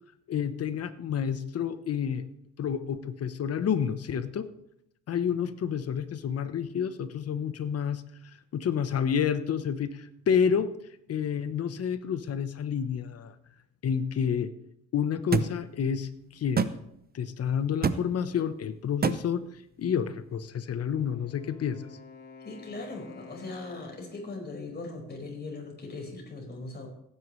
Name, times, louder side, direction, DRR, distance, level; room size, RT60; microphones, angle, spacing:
voice 1, 0.3-2.2 2.6-4.5 5.1-8.0 8.5-10.7 11.1-13.3 13.8-14.5 14.9-16.7 17.1-19.5 19.8-21.8, left 7 dB, 55° left, 12 dB, 1.0 m, -29 dB
sound 1, 15.3-15.5 16.6-16.7 17.8-18.0 19.0-19.2, right 6 dB, 30° right, 0.7 m, -24 dB
Wind instrument woodwind instrument, 20.7-24.5, left 4 dB, 85° left, 2.6 m, -50 dB
voice 2, 22.4-26.9, left 3 dB, 35° left, 0 dB, 5.1 m, -39 dB
17.5 x 9.8 x 3.2 m, 0.75 s
cardioid pair, 90°, 30 cm